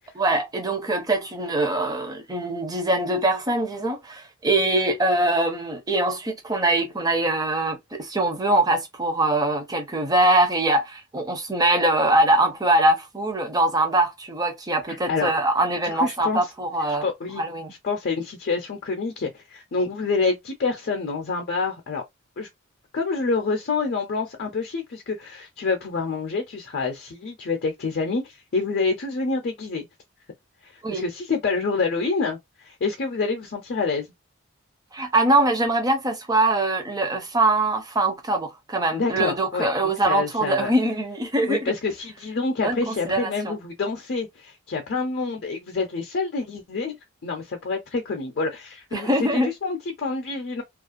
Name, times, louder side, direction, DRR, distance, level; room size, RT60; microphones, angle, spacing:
voice 1, 0.2-17.1 17.4-17.7 30.8-31.1 34.9-41.7 42.6-43.5 48.9-49.5, right 2 dB, 20° right, 0.6 m, -23 dB
voice 2, 14.9-15.3 15.8-16.5 17.0-17.4 17.8-22.0 22.4-22.5 22.9-29.9 30.6-34.1 38.9-39.7 40.1-40.7 41.5-47.0 47.2-50.6, left 4 dB, 50° left, 0.5 m, -27 dB
2.4 x 2.1 x 2.4 m
head